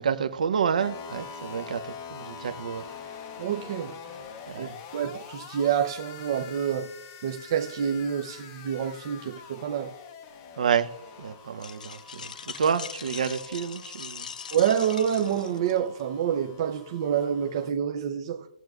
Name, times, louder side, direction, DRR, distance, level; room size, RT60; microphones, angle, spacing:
voice 1, 0.0-1.8 2.1-2.8 4.5-4.8 10.6-10.9 11.2-12.2 12.6-14.2, right 7 dB, 60° right, 0.8 m, -28 dB
sound 1, 0.8-17.7, left 6 dB, 20° left, 0.6 m, -45 dB
voice 2, 3.4-3.9 4.6-4.7 4.9-6.9 7.2-9.9 14.5-18.5, right 8 dB, 30° right, 0.5 m, -27 dB
sound 2, 11.6-16.0, left 6 dB, 70° left, 0.6 m, -41 dB
19.0 x 7.7 x 2.4 m
hypercardioid pair, 175°, 4 cm